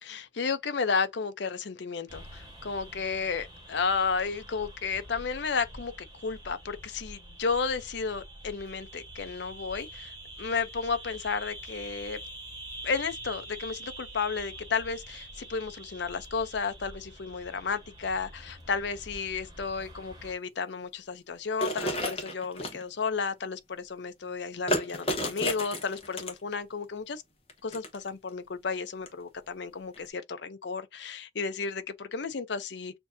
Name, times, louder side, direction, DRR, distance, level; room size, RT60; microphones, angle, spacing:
voice 1, 0.0-5.9 6.2-10.1 10.4-12.2 12.8-27.2 27.6-33.0, left 5 dB, 65° left, 0.6 m, -32 dB
sound 1, 2.1-20.3, right 1 dB, 20° right, 1.4 m, -46 dB
sound 2, 21.6-22.8 24.7-26.5 27.5-28.1 29.1-29.2 29.9-30.1, equal, 30° left, 1.1 m, -31 dB
6.8 x 2.7 x 2.6 m
head